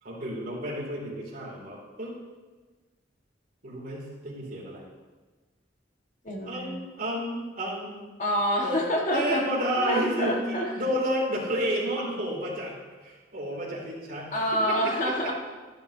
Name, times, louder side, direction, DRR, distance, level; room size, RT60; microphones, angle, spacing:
voice 1, 0.0-2.1 3.6-4.8 6.4-8.1 8.6-8.8 9.1-14.8 15.0-15.1, equal, 55° right, -3 dB, 3.1 m, -31 dB
voice 2, 6.2-6.8 8.2-10.8 14.3-15.3, equal, 45° left, -1 dB, 1.8 m, -27 dB
13.0 x 11.5 x 2.9 m, 1.3 s
head